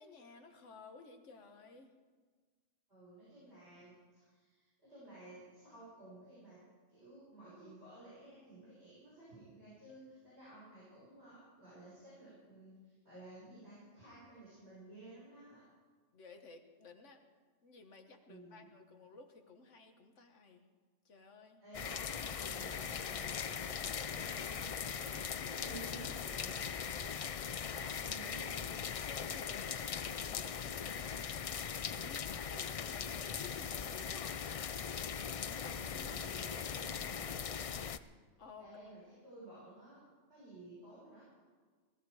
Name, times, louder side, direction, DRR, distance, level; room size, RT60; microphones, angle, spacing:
voice 1, 0.0-1.9 16.1-17.2 17.6-20.7 21.1-21.6 29.1-31.3 31.7-34.5 35.4-36.5 38.4-38.7, left 4 dB, 85° left, 5 dB, 1.7 m, -55 dB
voice 2, 2.9-6.6 6.9-15.6 18.3-18.7 21.6-27.1 27.6-28.8 32.1-32.4 35.4-37.4 38.6-40.0 40.3-41.3, right 2 dB, 65° right, -9 dB, 6.6 m, -54 dB
sound 1, 21.7-38.0, left 7 dB, 65° left, 0.3 m, -40 dB
18.5 x 14.5 x 4.9 m, 1.5 s
omnidirectional pair, 1.2 m